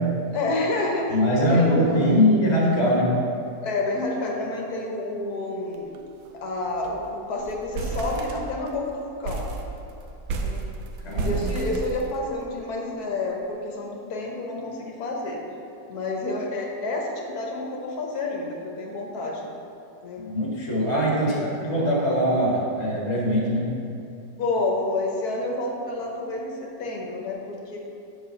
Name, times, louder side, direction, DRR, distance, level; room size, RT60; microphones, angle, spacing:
voice 1, 0.3-2.2 3.6-6.0 6.3-9.5 10.4-10.6 11.2-15.4 15.9-19.5 20.0-20.3 21.1-21.5 24.4-27.8, left 2 dB, 60° left, 0 dB, 1.4 m, -29 dB
voice 2, 1.1-3.1 11.0-11.4 20.3-23.7, equal, 40° left, -3 dB, 1.4 m, -22 dB
sound 1, 5.7-6.0 6.3-6.4 6.7-7.0 7.4-8.8 9.2-12.5, right 3 dB, 70° right, 1.2 m, -32 dB
7.3 x 4.8 x 5.2 m, 2.6 s
omnidirectional pair, 2.0 m